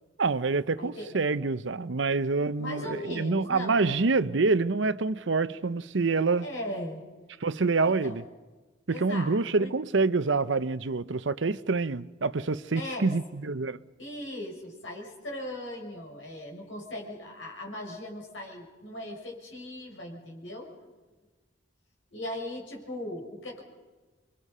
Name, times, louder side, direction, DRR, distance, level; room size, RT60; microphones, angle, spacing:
voice 1, 0.2-6.5 7.4-8.2 8.9-13.8, right 3 dB, 70° right, 0.7 m, -26 dB
voice 2, 0.8-1.1 2.6-3.9 6.4-7.0 8.0-8.2 8.9-9.7 12.7-13.1 14.0-20.7 22.1-23.6, left 1 dB, 75° left, 6.6 m, -38 dB
27.5 x 23.5 x 5.5 m
head